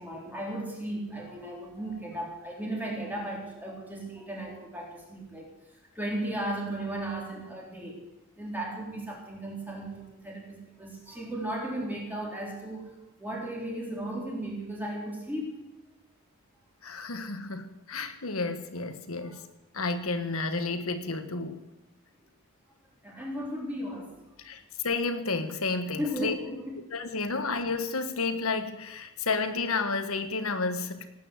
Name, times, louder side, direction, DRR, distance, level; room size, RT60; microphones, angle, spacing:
voice 1, 0.0-5.5 5.9-8.0 8.4-15.6 19.2-19.4 23.0-24.4 25.9-26.8, right 1 dB, 10° right, -2 dB, 3.8 m, -36 dB
voice 2, 16.8-19.4 19.7-21.6 24.4-26.3 26.9-31.1, left 3 dB, 70° left, 8 dB, 1.5 m, -31 dB
18.5 x 8.9 x 8.2 m, 0.95 s
head